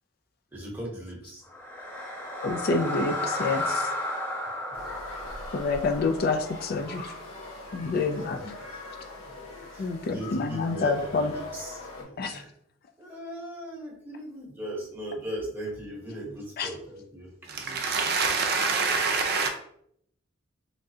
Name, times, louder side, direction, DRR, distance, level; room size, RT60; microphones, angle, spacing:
voice 1, 0.5-1.4 7.9-9.1 9.7-12.5 13.0-17.3, right 1 dB, 10° right, 1.0 m, -39 dB
sound 1, 1.5-7.6, left 1 dB, 10° left, 0.7 m, -34 dB
voice 2, 2.4-3.9 5.5-7.1 7.7-8.4 9.8-11.3 12.2-12.4 16.6-16.7, left 3 dB, 45° left, 0.3 m, -28 dB
sound 2, 4.7-12.0, left 2 dB, 90° left, 1.2 m, -41 dB
voice 3, 17.5-19.5, right 4 dB, 50° right, 0.5 m, -26 dB
3.6 x 3.2 x 2.7 m
head